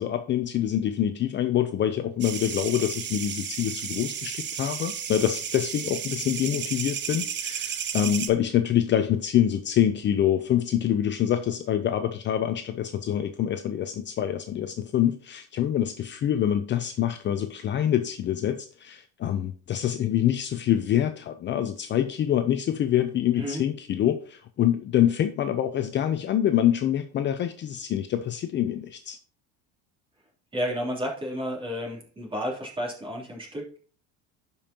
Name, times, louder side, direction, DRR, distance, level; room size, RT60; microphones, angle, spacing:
voice 1, 0.0-29.2, left 10 dB, 35° left, 9 dB, 0.6 m, -26 dB
sound 1, 2.2-8.3, right 8 dB, 35° right, 1.0 m, -33 dB
voice 2, 30.5-33.8, equal, 15° right, -2 dB, 3.3 m, -31 dB
12.0 x 5.4 x 2.8 m, 0.43 s
cardioid pair, 125°, 31 cm